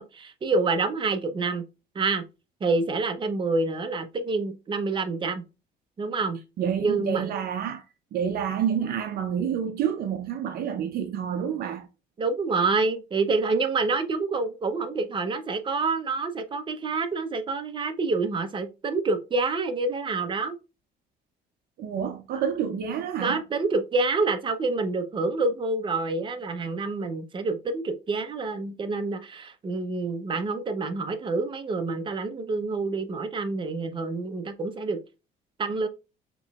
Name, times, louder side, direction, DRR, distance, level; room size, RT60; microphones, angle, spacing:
voice 1, 0.0-1.6 1.9-2.2 2.6-5.4 6.0-6.4 6.8-7.3 12.2-20.6 23.2-35.0 35.6-35.9, right 3 dB, 30° right, 0.7 m, -27 dB
voice 2, 6.6-7.8 8.1-11.9 21.8-23.4, right 8 dB, 65° right, 0.7 m, -28 dB
6.9 x 3.0 x 2.4 m
cardioid pair, 110°, 17 cm